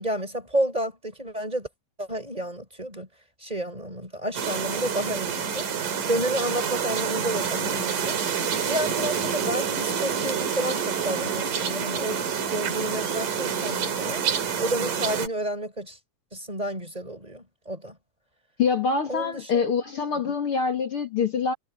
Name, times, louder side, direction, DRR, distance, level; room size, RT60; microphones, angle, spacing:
voice 1, 0.0-1.7 2.0-3.1 3.4-5.7 6.1-8.2 8.7-12.2 12.5-14.2 14.6-16.0 16.3-18.0 19.1-19.7 20.2-20.3, right 1 dB, 10° right, 5.5 m, -30 dB
sound 1, 4.3-15.3, right 7 dB, 85° right, 4.4 m, -28 dB
voice 2, 18.6-21.5, left 5 dB, 45° left, 2.7 m, -25 dB
omnidirectional pair, 3.7 m